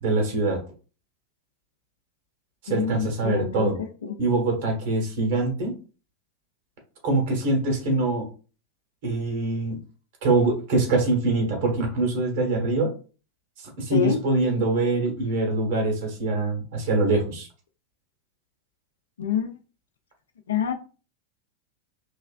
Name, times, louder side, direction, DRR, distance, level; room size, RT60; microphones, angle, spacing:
voice 1, 0.0-0.6 2.6-3.8 4.2-5.8 7.0-8.3 9.0-9.8 10.2-12.9 13.8-17.5, right 2 dB, 50° right, 1.6 m, -24 dB
voice 2, 2.7-3.7 4.0-4.2 13.9-14.2 19.2-19.5 20.5-20.7, left 8 dB, 65° left, 0.6 m, -26 dB
4.5 x 3.1 x 2.4 m
figure-of-eight pair, 90°, 0 cm